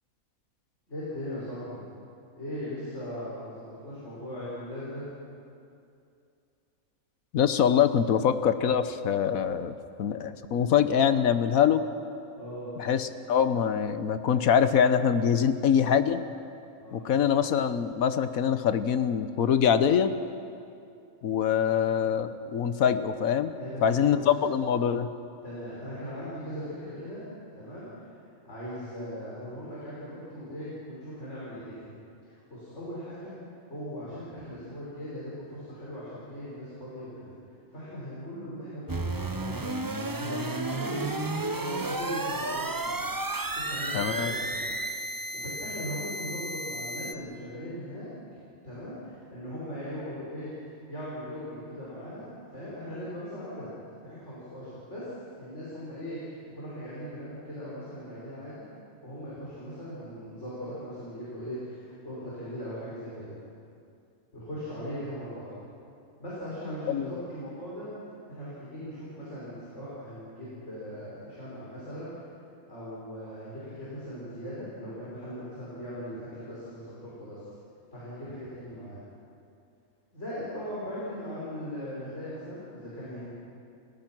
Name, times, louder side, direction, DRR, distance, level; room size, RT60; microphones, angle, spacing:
voice 1, 0.9-1.8 2.3-5.0 12.4-12.7 16.8-17.1 23.6-24.2 25.4-27.2 27.5-28.1 28.4-32.0 32.2-33.3 33.7-37.3 37.7-39.5 40.2-43.0 43.5-44.7 45.3-48.4 48.6-53.7 54.0-55.1 55.4-58.7 59.0-63.4 64.3-65.5 66.2-67.9 68.3-72.1 72.7-77.4 77.9-79.0 80.1-83.3, equal, 55° left, -9 dB, 6.0 m, -39 dB
voice 2, 7.3-9.7 10.0-11.9 12.8-16.2 16.9-20.1 21.2-23.5 23.8-25.1 43.9-44.3 66.9-67.2, left 8 dB, 80° left, 11 dB, 1.3 m, -24 dB
sound 1, 38.9-47.1, right 2 dB, 20° right, 0.6 m, -32 dB
29.5 x 17.5 x 6.1 m, 2.5 s
omnidirectional pair, 1.5 m